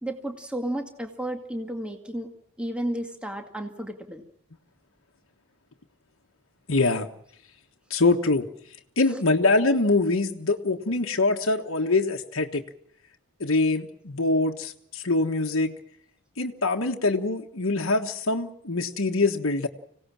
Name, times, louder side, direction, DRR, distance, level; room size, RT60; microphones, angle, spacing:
voice 1, 0.0-2.3 2.6-4.2 9.1-9.2, right 1 dB, 5° right, 4 dB, 2.1 m, -32 dB
voice 2, 6.7-7.1 7.9-8.5 9.0-12.6 13.4-15.7 16.4-19.7, left 3 dB, 65° left, 2 dB, 1.4 m, -24 dB
25.5 x 17.5 x 7.4 m, 0.69 s
head